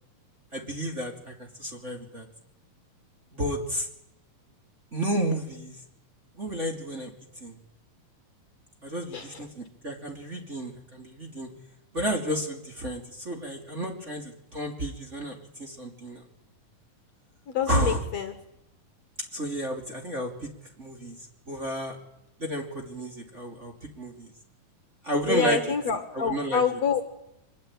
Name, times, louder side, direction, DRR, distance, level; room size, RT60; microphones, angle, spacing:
voice 1, 0.5-2.3 3.3-3.9 4.9-5.8 6.3-7.1 7.4-7.6 8.8-11.5 11.9-16.2 17.7-18.1 19.3-20.5 20.8-21.2 21.5-22.0 22.4-24.3 25.0-25.6 26.1-26.6, right 1 dB, 20° right, 0 dB, 2.8 m, -31 dB
voice 2, 17.5-18.4 25.3-27.0, left 6 dB, 55° left, 8 dB, 2.4 m, -26 dB
24.5 x 21.0 x 8.9 m, 0.85 s
omnidirectional pair, 4.0 m